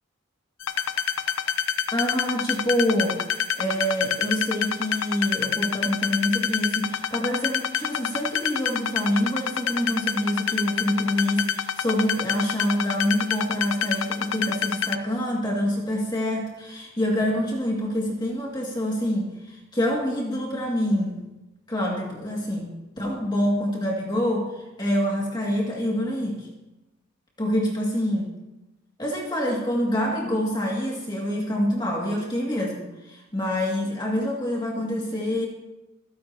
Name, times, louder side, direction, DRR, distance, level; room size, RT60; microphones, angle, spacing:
sound 1, 0.6-14.9, left 8 dB, 75° left, 0.7 m, -27 dB
voice 1, 1.9-3.2 3.6-19.3 19.7-21.2 21.7-24.5 24.8-26.5 27.4-28.3 29.0-35.5, equal, 20° left, -2 dB, 2.3 m, -26 dB
27.5 x 10.0 x 2.9 m, 1.0 s
head